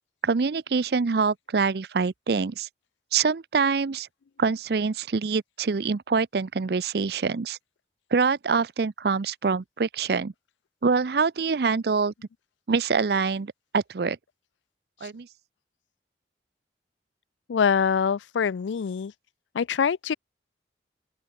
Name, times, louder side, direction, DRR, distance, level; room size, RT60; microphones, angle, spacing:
voice 1, 0.2-2.7 3.1-4.1 4.4-7.6 8.1-10.3 10.8-12.1 12.7-14.2 15.0-15.3, right 5 dB, 60° right, 0.5 m, -25 dB
voice 2, 17.5-19.1 19.5-20.1, left 6 dB, 85° left, 0.4 m, -24 dB
open air
head